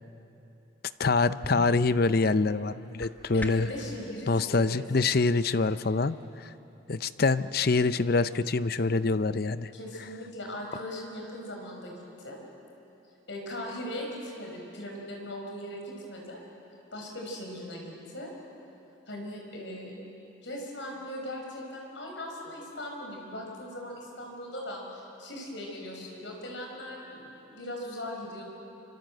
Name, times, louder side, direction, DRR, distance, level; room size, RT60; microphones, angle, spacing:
voice 1, 1.0-3.7 4.3-6.5 6.9-9.7, left 3 dB, 50° left, 13 dB, 0.6 m, -25 dB
sound 1, 3.0-3.8, equal, 10° left, 1.3 m, -42 dB
voice 2, 3.3-4.8 9.7-12.4 13.3-16.4 16.9-18.3 19.1-19.9 20.4-28.4, left 1 dB, 65° left, 0 dB, 6.1 m, -39 dB
26.5 x 26.0 x 7.8 m, 2.9 s
head